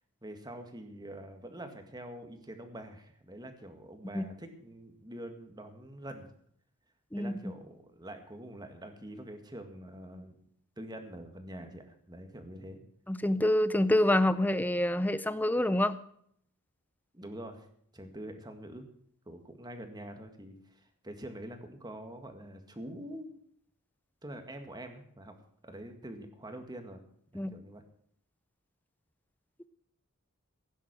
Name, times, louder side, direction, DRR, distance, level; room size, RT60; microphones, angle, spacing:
voice 1, 0.2-6.3 7.1-10.4 10.8-12.8 17.1-17.7 17.9-18.9 19.3-23.3 24.2-25.4 25.6-27.0 27.3-27.8, right 1 dB, 20° right, 6 dB, 1.9 m, -45 dB
voice 2, 13.1-16.0 27.3-27.5, left 1 dB, 10° left, 14 dB, 0.6 m, -26 dB
16.5 x 9.8 x 6.3 m, 0.65 s
head